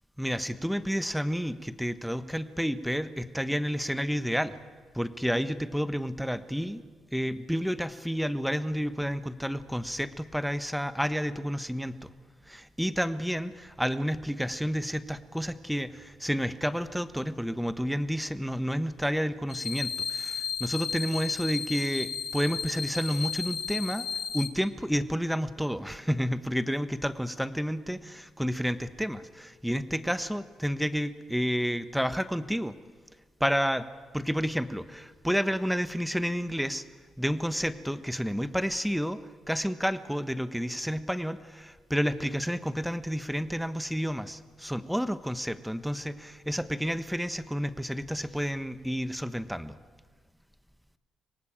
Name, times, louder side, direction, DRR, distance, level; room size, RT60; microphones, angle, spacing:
voice 1, 0.2-4.6 4.9-6.8 7.1-12.1 12.5-24.1 24.3-32.7 33.4-33.9 34.1-36.8 37.2-39.2 39.5-49.8, equal, ahead, 12 dB, 1.2 m, -30 dB
sound 1, 19.5-24.5, left 6 dB, 45° left, 2.4 m, -34 dB
24.5 x 18.5 x 9.0 m, 1.5 s
cardioid pair, 90°, 0 cm